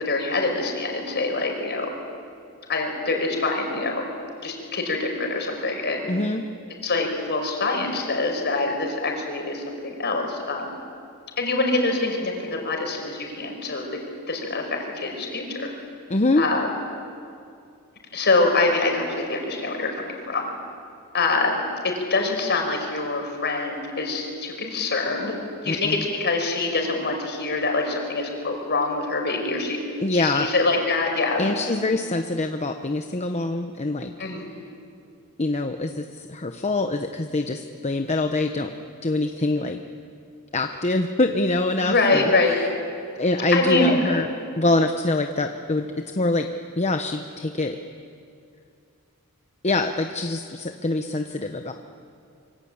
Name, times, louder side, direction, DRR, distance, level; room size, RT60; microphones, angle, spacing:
voice 1, 0.0-1.9 2.7-4.0 4.4-6.1 6.8-10.8 11.4-13.9 14.3-15.7 16.4-16.8 18.1-20.5 21.1-25.3 25.6-29.8 30.1-31.5 34.2-34.5 41.8-42.6 43.5-43.9, left 3 dB, 50° left, 3 dB, 5.2 m, -25 dB
voice 2, 6.1-6.4 16.1-16.4 25.6-26.0 30.0-30.5 31.4-34.3 35.4-38.7 39.0-39.8 40.5-42.7 43.2-46.5 46.8-47.8 49.6-51.7, left 2 dB, 30° left, 6 dB, 0.9 m, -24 dB
25.5 x 24.5 x 8.7 m, 2.4 s
head